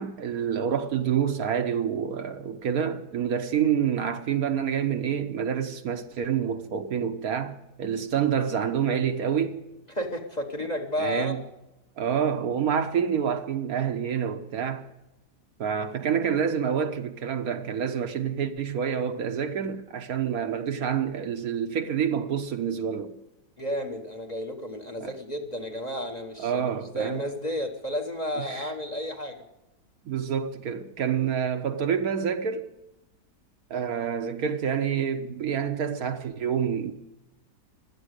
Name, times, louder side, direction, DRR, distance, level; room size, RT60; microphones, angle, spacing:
voice 1, 0.0-9.6 10.6-10.7 11.0-11.4 12.0-14.8 15.6-23.1 25.0-25.2 26.4-27.2 28.3-28.7 30.0-32.7 33.7-36.9, right 8 dB, 65° right, 1.2 m, -27 dB
voice 2, 9.9-11.3 23.6-29.4, equal, 30° left, 1.2 m, -32 dB
16.5 x 12.0 x 6.5 m
omnidirectional pair, 1.8 m